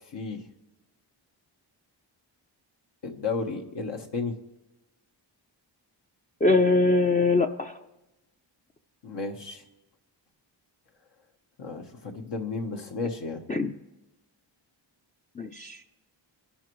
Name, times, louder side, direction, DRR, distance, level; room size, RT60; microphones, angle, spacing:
voice 1, 0.1-0.5 3.0-4.3 9.0-9.6 11.6-13.4, left 4 dB, 65° left, 2 dB, 1.2 m, -33 dB
voice 2, 6.4-7.8 13.5-13.7 15.4-15.8, left 3 dB, 20° left, 4 dB, 0.4 m, -23 dB
28.0 x 11.5 x 3.1 m, 1.0 s
wide cardioid pair, 125°, 45 cm